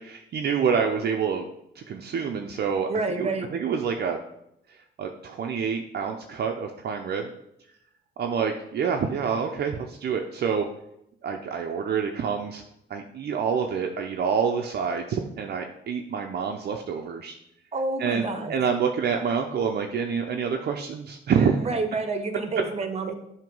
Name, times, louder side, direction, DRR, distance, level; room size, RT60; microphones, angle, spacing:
voice 1, 0.0-1.5 1.8-2.9 3.2-4.2 5.0-7.3 8.2-10.7 11.2-12.6 12.9-17.3 18.0-21.6, right 6 dB, 55° right, 3 dB, 0.6 m, -27 dB
voice 2, 2.9-3.5 17.7-18.5 21.6-23.1, right 3 dB, 30° right, 7 dB, 1.0 m, -28 dB
7.5 x 2.9 x 5.3 m, 0.78 s
cardioid pair, 90°, 20 cm